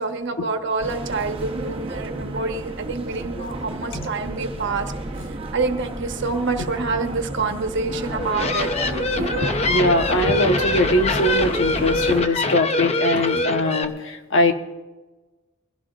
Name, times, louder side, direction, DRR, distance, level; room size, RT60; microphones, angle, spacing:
voice 1, 0.0-4.9 5.5-8.7 9.2-9.5 9.8-9.9 10.2-10.6 12.1-12.3 13.3-13.5, right 3 dB, 60° right, 5 dB, 1.2 m, -27 dB
sound 1, 0.8-12.2, right 2 dB, 25° right, 1.0 m, -32 dB
sound 2, 8.1-13.8, left 2 dB, 30° left, 0.8 m, -24 dB
voice 2, 9.7-14.5, left 1 dB, 60° left, 6 dB, 1.2 m, -21 dB
22.0 x 16.0 x 2.5 m, 1.2 s
head